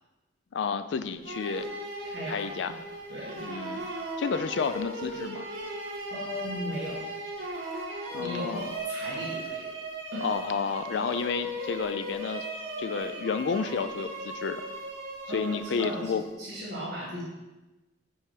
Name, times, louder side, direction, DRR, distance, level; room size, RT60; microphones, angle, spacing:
voice 1, 0.5-1.7 2.3-2.7 3.4-3.9 4.2-5.5 8.1-8.7 10.2-12.5 12.8-14.6 15.3-16.2, left 5 dB, 65° left, 11 dB, 0.3 m, -31 dB
sound 1, 1.3-16.3, right 1 dB, 80° right, 1.3 m, -37 dB
voice 2, 2.0-2.7 3.1-3.4 6.1-7.0 8.1-9.7 10.1-10.3 11.0-11.1 15.3-17.2, equal, 60° right, -6 dB, 1.5 m, -37 dB
5.4 x 4.4 x 4.9 m, 1.1 s
head